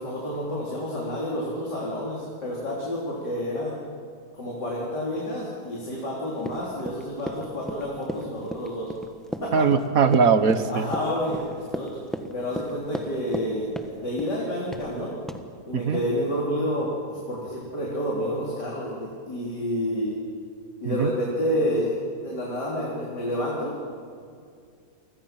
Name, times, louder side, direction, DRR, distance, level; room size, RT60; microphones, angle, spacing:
voice 1, 0.0-3.8 4.3-8.9 9.4-9.7 10.7-12.0 12.3-15.2 15.6-20.2 20.8-23.7, equal, 80° left, -4 dB, 4.2 m, -29 dB
Run, 6.4-13.5 13.8-14.4 14.7-14.9 15.3-15.4, equal, ahead, 1.2 m, -34 dB
voice 2, 9.5-10.9 15.7-16.0 20.9-21.1, right 5 dB, 60° right, 10 dB, 1.6 m, -20 dB
29.5 x 24.5 x 6.0 m, 2.3 s
omnidirectional pair, 1.8 m